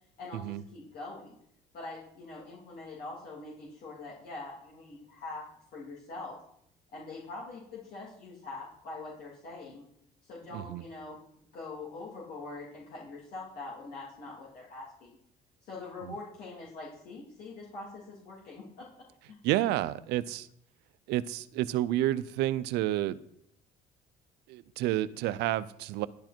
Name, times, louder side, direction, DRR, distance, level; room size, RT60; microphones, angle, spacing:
voice 1, 0.2-1.3 1.7-5.4 5.7-6.4 6.9-9.8 10.2-11.2 11.5-15.2 15.6-19.4, left 3 dB, 65° left, -5 dB, 3.3 m, -43 dB
voice 2, 10.5-10.8 16.0-16.1 19.4-20.5 21.1-23.2 24.5-26.1, right 14 dB, 90° right, 16 dB, 0.5 m, -30 dB
11.0 x 10.0 x 4.5 m, 0.72 s
cardioid pair, 110°, 17 cm